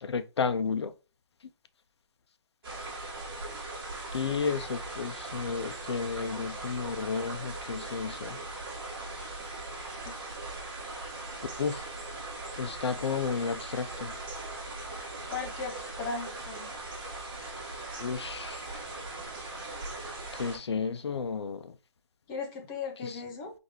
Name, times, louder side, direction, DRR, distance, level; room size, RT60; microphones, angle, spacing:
voice 1, 0.0-0.9 4.1-8.4 11.6-11.8 12.6-14.1 18.0-18.7 20.4-21.7 23.0-23.2, left 5 dB, 60° left, 0.6 m, -32 dB
sound 1, 2.6-20.6, right 2 dB, 50° right, 1.8 m, -40 dB
voice 2, 15.3-16.7 22.3-23.5, left 4 dB, 15° left, 0.6 m, -37 dB
4.1 x 3.3 x 3.2 m
hypercardioid pair, 165°, 15 cm